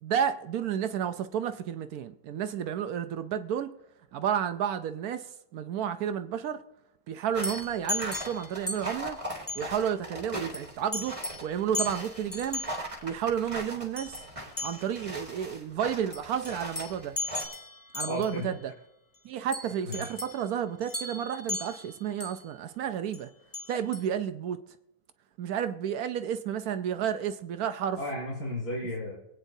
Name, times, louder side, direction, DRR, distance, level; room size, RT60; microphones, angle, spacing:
voice 1, 0.0-3.7 4.1-6.6 7.1-9.2 9.6-11.2 11.4-12.6 13.0-14.2 14.6-17.2 17.9-18.7 19.2-23.3 23.7-24.6 25.4-28.0, right 9 dB, 75° right, 1.0 m, -31 dB
sound 1, 7.3-17.5, right 1 dB, 20° right, 1.8 m, -40 dB
sound 2, 7.4-9.0 9.3-9.7 10.5-10.7 10.9-11.5 11.7-12.8 14.0-14.3 14.6-15.0 16.1-18.4 19.5-20.4 20.8-22.4 23.1-23.2 23.5-24.0, left 2 dB, 15° left, 0.7 m, -36 dB
voice 2, 18.0-18.5 19.9-20.1 28.0-29.2, left 1 dB, 75° left, 3.0 m, -34 dB
23.5 x 9.1 x 2.7 m
omnidirectional pair, 1.7 m